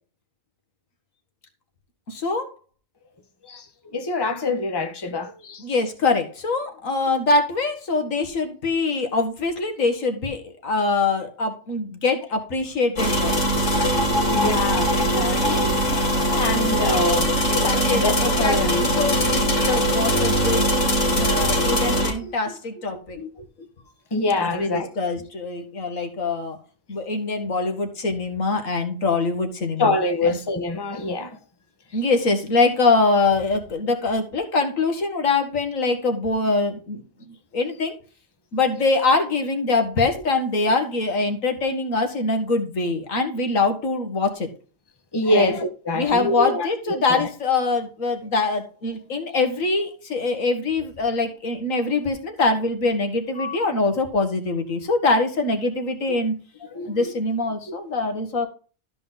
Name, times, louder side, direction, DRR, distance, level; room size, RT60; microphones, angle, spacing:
voice 1, 2.1-2.5 5.6-13.5 17.8-20.8 21.1-23.2 24.4-26.6 26.9-30.0 30.2-30.4 31.9-37.0 37.5-37.9 38.5-44.5 45.3-45.5 45.9-56.4 56.9-58.5, left 3 dB, 80° left, 2.0 m, -23 dB
voice 2, 3.9-5.6 14.2-18.9 22.2-22.3 23.1-23.3 24.1-24.9 29.8-31.3 45.1-47.3 53.4-53.6 56.1-56.2 56.7-56.9 57.7-57.8, left 2 dB, 20° left, 1.1 m, -25 dB
sound 1, 13.0-22.1, equal, 65° left, 3.0 m, -21 dB
13.0 x 5.1 x 4.0 m
omnidirectional pair, 1.4 m